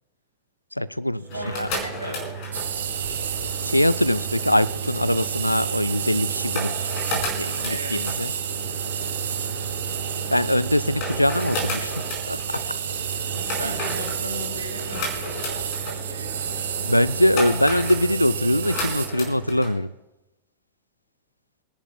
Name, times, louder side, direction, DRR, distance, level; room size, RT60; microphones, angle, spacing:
voice 1, 0.8-1.3 1.6-1.7 3.6-6.9 7.4-8.3 10.3-11.9 12.3-12.4 13.6-13.7 16.8-19.9, left 1 dB, 85° left, 0.3 m, -22 dB
sound 1, 1.2-19.7, right 2 dB, 45° left, 4.7 m, -32 dB
voice 2, 1.3-3.0 7.7-8.1 9.0-9.7 13.6-16.7, right 1 dB, 85° right, 1.9 m, -38 dB
sound 2, 2.5-19.1, right 8 dB, 65° right, 1.5 m, -31 dB
26.5 x 11.0 x 2.3 m
figure-of-eight pair, 90°, 0 cm